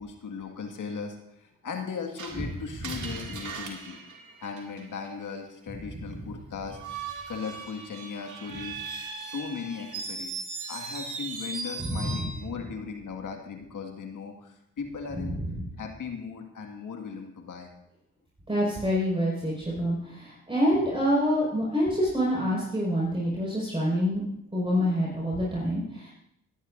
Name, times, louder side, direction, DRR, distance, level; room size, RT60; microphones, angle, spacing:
voice 1, 0.0-4.0 4.4-6.8 7.3-8.8 9.2-15.4 15.8-17.7 19.7-19.8, left 5 dB, 60° left, 3 dB, 2.0 m, -38 dB
Screech, 2.2-5.1 6.7-12.4, right 4 dB, 55° right, 2.4 m, -38 dB
voice 2, 11.8-12.3 15.3-15.6 18.5-24.2 24.5-26.1, equal, 15° right, -6 dB, 5.3 m, -26 dB
19.5 x 10.0 x 2.6 m, 0.80 s
supercardioid pair, 55°, 35 cm